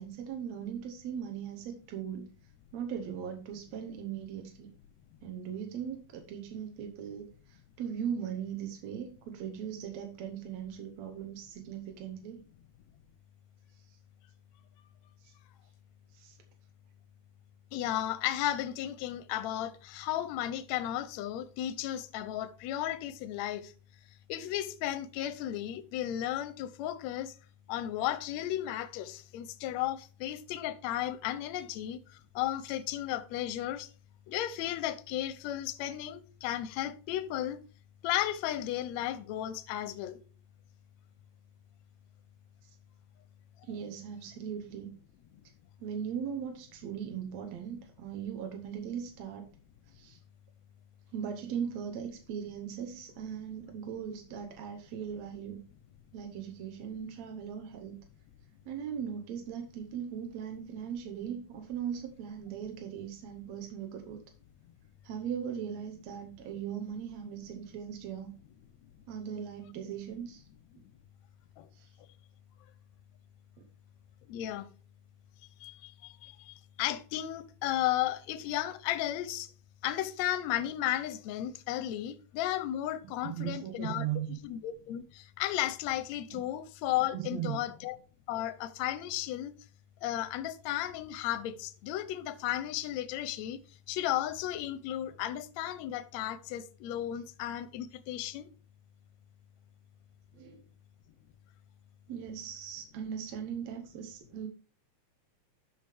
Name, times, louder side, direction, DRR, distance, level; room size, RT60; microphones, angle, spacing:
voice 1, 0.0-2.3 2.7-4.7 5.2-12.4 13.9-14.0 15.2-15.3 16.1-16.4 42.6-42.7 43.6-44.9 45.8-49.5 49.9-50.2 51.1-55.6 56.1-58.0 58.7-64.2 65.0-68.3 69.1-70.5 71.7-71.9 73.6-73.7 83.0-84.4 86.3-86.4 87.1-87.6 100.3-100.6 102.1-104.5, right 8 dB, 70° right, 2.2 m, -39 dB
voice 2, 17.7-23.7 24.3-27.3 27.7-33.9 34.3-37.6 38.0-40.2 71.6-71.7 74.3-74.7 75.6-79.5 79.8-84.1 84.4-88.0 88.3-89.5 90.0-93.6 93.9-98.5, left 12 dB, 75° left, 1.9 m, -34 dB
12.5 x 5.1 x 3.5 m
omnidirectional pair, 3.5 m